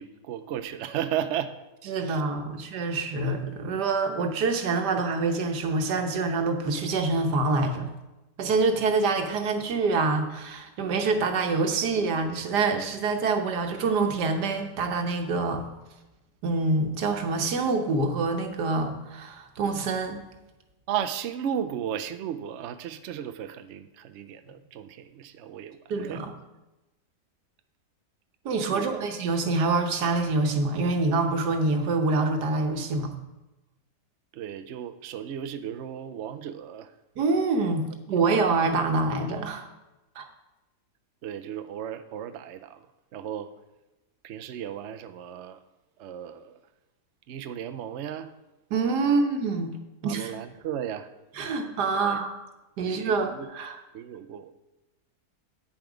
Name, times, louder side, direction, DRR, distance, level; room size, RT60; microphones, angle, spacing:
voice 1, 0.0-1.5 2.0-2.2 2.5-2.6 20.9-26.2 28.7-28.8 34.3-36.9 41.2-42.8 43.1-43.5 44.2-45.6 46.0-46.6 47.3-48.3 50.0-51.1 51.9-52.2 52.8-53.5 53.9-54.5, right 9 dB, 65° right, 9 dB, 0.7 m, -35 dB
voice 2, 1.9-7.9 8.4-15.6 16.4-20.2 25.9-26.3 28.4-33.1 37.2-39.7 40.2-40.3 48.7-49.7 50.0-50.3 51.4-52.4 52.8-53.8, right 3 dB, 85° right, 6 dB, 1.6 m, -26 dB
9.0 x 7.2 x 4.9 m, 1.0 s
omnidirectional pair, 1.7 m